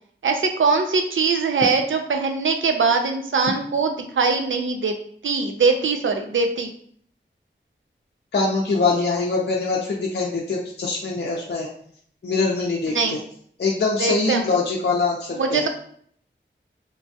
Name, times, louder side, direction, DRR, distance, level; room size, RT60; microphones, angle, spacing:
voice 1, 0.2-5.0 5.2-6.7 12.9-13.2 14.0-14.5 15.3-15.7, right 4 dB, 75° right, 4 dB, 0.4 m, -22 dB
voice 2, 8.3-11.7 12.2-13.2 13.6-15.7, left 3 dB, 55° left, -3 dB, 0.5 m, -23 dB
3.1 x 2.2 x 2.7 m, 0.62 s
wide cardioid pair, 40°, 20 cm